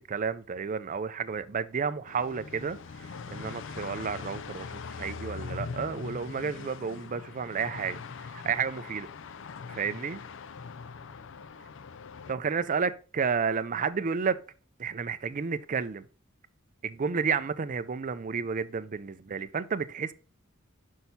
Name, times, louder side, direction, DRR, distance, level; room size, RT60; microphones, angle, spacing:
voice 1, 0.1-9.1 9.7-10.2 12.3-14.4 14.8-16.1 16.8-20.1, right 6 dB, 40° right, 0.4 m, -31 dB
sound 1, 2.1-12.3, left 5 dB, 60° left, 0.5 m, -41 dB
6.2 x 5.6 x 4.0 m
head